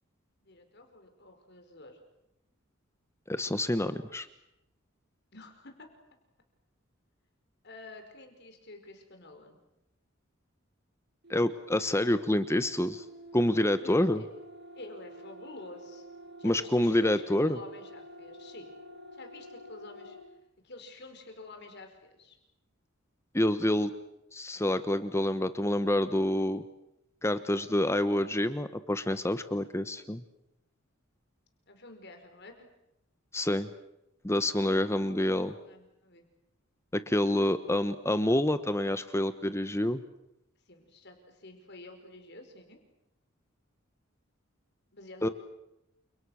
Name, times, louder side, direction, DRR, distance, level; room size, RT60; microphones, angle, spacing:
voice 1, 0.4-2.0 5.3-5.9 7.6-9.6 13.8-14.3 14.7-16.1 16.4-18.7 19.1-20.2 20.6-22.4 31.7-32.7 34.5-34.9 35.7-36.2 37.6-37.7 40.6-42.8 44.9-45.3, left 2 dB, 55° left, 5 dB, 4.9 m, -49 dB
voice 2, 3.3-4.3 11.3-13.0 13.3-14.2 16.4-17.6 23.3-23.9 24.3-26.6 27.2-30.2 33.3-33.7 34.2-35.5 36.9-40.0 45.2-45.3, left 1 dB, 15° left, 11 dB, 1.1 m, -27 dB
sound 1, 11.2-20.3, right 1 dB, 55° right, 7.6 m, -49 dB
30.0 x 28.0 x 6.4 m, 0.85 s
head